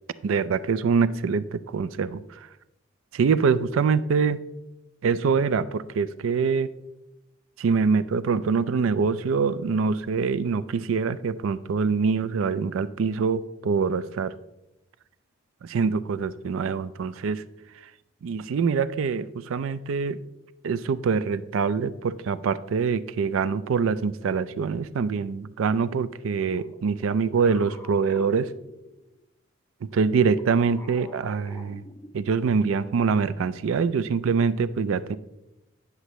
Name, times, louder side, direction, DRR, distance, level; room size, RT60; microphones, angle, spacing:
voice 1, 0.2-2.5 3.1-4.4 5.0-6.7 7.6-14.3 15.6-17.4 18.2-20.2 20.6-28.5 29.8-31.8 32.1-35.2, right 5 dB, 75° right, 15 dB, 0.4 m, -24 dB
sound 1, 26.5-29.3 29.9-32.6, left 1 dB, 10° left, 0.5 m, -47 dB
9.7 x 6.6 x 3.1 m, 0.94 s
head